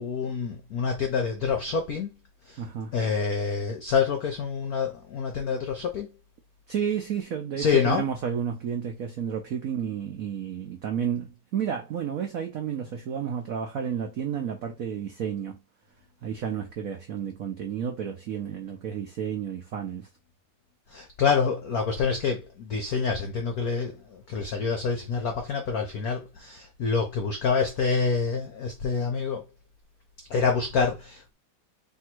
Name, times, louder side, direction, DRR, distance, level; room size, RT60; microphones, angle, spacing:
voice 1, 0.0-2.1 2.5-2.6 2.9-6.1 7.6-8.0 20.9-29.4 30.3-31.3, left 5 dB, 65° left, 0.9 m, -27 dB
voice 2, 2.6-2.9 6.7-15.6 16.2-20.1, right 8 dB, 75° right, 0.7 m, -31 dB
3.5 x 2.7 x 4.4 m
omnidirectional pair, 2.3 m